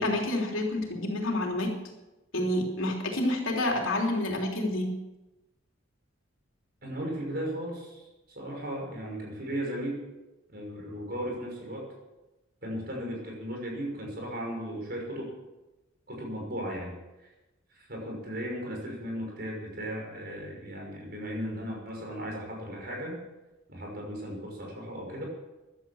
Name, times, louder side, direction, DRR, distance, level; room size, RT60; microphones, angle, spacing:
voice 1, 0.0-1.7 2.3-4.9, left 1 dB, 85° left, 1 dB, 3.4 m, -28 dB
voice 2, 6.8-10.0 10.5-11.8 12.6-15.3 16.1-16.9 17.7-23.2 23.7-25.3, equal, 50° right, 0 dB, 6.1 m, -36 dB
15.0 x 11.5 x 7.2 m, 1.1 s
head